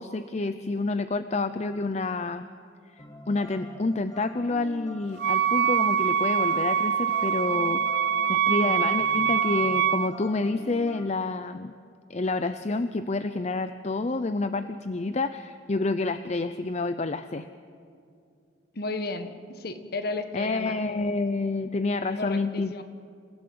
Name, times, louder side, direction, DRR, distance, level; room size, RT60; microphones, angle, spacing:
voice 1, 0.0-2.5 3.0-7.8 8.3-11.7 12.1-17.5 20.3-22.7, left 3 dB, 35° left, 11 dB, 0.5 m, -28 dB
sound 1, 3.0-11.1, left 1 dB, 20° left, 1.7 m, -45 dB
Wind instrument woodwind instrument, 5.2-10.1, right 8 dB, 60° right, 0.5 m, -24 dB
voice 2, 18.7-20.8 22.2-22.8, left 2 dB, 55° left, 8 dB, 1.5 m, -33 dB
28.0 x 16.0 x 7.9 m, 2.4 s
head